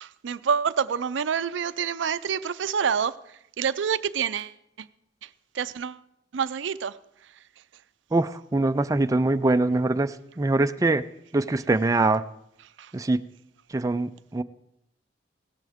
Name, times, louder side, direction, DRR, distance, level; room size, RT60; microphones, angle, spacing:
voice 1, 0.0-3.1 3.6-4.5 5.6-6.0 6.3-6.9, right 7 dB, 90° right, 0.5 m, -27 dB
voice 2, 8.1-11.0 11.3-12.2 12.9-13.2 13.7-14.4, right 2 dB, 20° right, 0.4 m, -23 dB
17.0 x 14.0 x 3.6 m
head